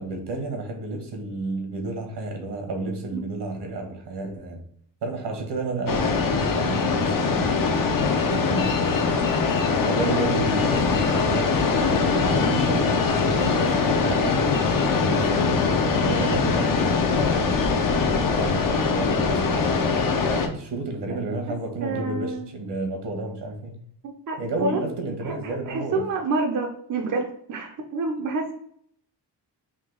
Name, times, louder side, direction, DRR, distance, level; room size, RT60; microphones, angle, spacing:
voice 1, 0.0-4.6 5.0-7.9 8.2-8.8 9.8-14.5 15.0-17.3 17.7-18.0 18.3-23.8 24.4-26.1, right 2 dB, 75° right, 4 dB, 1.1 m, -31 dB
sound 1, 5.9-20.5, left 4 dB, 50° left, 0.6 m, -22 dB
voice 2, 21.8-22.4 24.0-24.8 25.2-28.5, right 3 dB, 45° right, 2 dB, 0.5 m, -28 dB
3.6 x 2.7 x 3.7 m, 0.65 s
wide cardioid pair, 130°, 42 cm